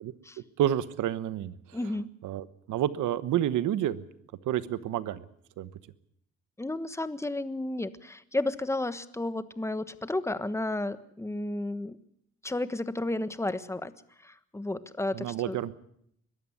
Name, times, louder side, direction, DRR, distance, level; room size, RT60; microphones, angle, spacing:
voice 1, 0.6-1.5 2.2-4.0 4.4-5.2 5.6-5.7 15.1-15.7, right 11 dB, 80° right, 15 dB, 1.2 m, -29 dB
voice 2, 1.7-2.1 6.6-12.0 12.4-13.9 14.2-15.6, left 2 dB, 10° left, 13 dB, 1.3 m, -32 dB
22.0 x 13.0 x 9.7 m, 0.70 s
cardioid pair, 90°, 30 cm